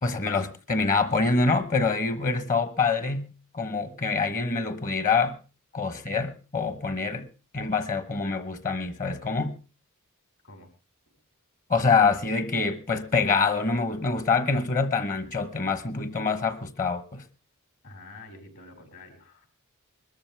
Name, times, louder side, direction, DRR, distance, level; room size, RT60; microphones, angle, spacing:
voice 1, 0.0-5.4 5.7-9.5 11.7-17.2, left 4 dB, 40° left, 1.1 m, -26 dB
voice 2, 17.8-19.5, left 2 dB, 65° left, 5.3 m, -48 dB
22.0 x 13.5 x 3.4 m
head